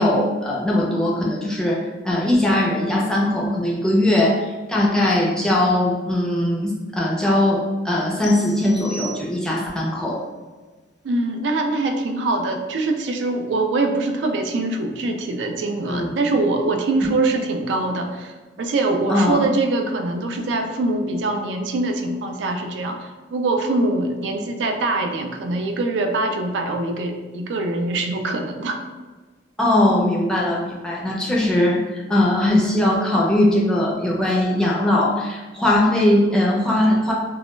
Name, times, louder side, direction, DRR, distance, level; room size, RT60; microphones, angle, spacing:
voice 1, 0.0-10.2 15.9-16.1 19.1-19.4 29.6-31.8 32.1-37.1, left 1 dB, 5° left, -4 dB, 0.4 m, -20 dB
sound 1, 8.2-9.8, right 1 dB, 65° left, 0.4 m, -38 dB
voice 2, 11.0-28.8, right 2 dB, 80° right, 5 dB, 0.3 m, -23 dB
2.2 x 2.0 x 3.1 m, 1.3 s
head